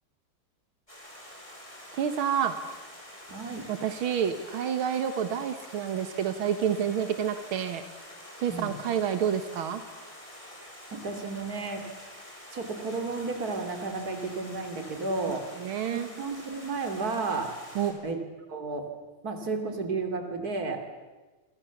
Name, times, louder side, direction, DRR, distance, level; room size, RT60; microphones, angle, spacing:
Stream, 0.9-17.9, left 1 dB, 15° left, 5.2 m, -47 dB
voice 1, 1.9-2.5 3.7-7.8 8.4-9.8 15.6-16.1 17.8-18.0, right 8 dB, 85° right, 9 dB, 2.1 m, -28 dB
voice 2, 3.3-3.7 8.5-8.7 10.9-11.8 12.5-15.5 15.9-17.5 18.0-18.2 18.5-18.9 19.2-20.8, right 3 dB, 45° right, 6 dB, 3.4 m, -32 dB
28.0 x 25.5 x 7.2 m, 1.2 s
omnidirectional pair, 2.2 m